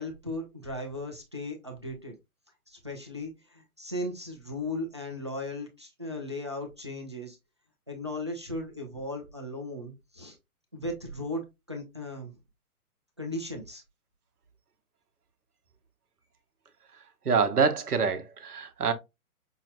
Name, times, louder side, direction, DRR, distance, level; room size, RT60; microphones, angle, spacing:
voice 1, 0.0-2.2 2.7-7.4 7.9-10.4 10.7-11.4 11.7-12.4 13.2-13.8, left 1 dB, 20° right, 0.3 m, -36 dB
voice 2, 17.2-18.9, right 5 dB, 85° right, 0.9 m, -25 dB
5.5 x 2.1 x 2.6 m
figure-of-eight pair, 130°, 44 cm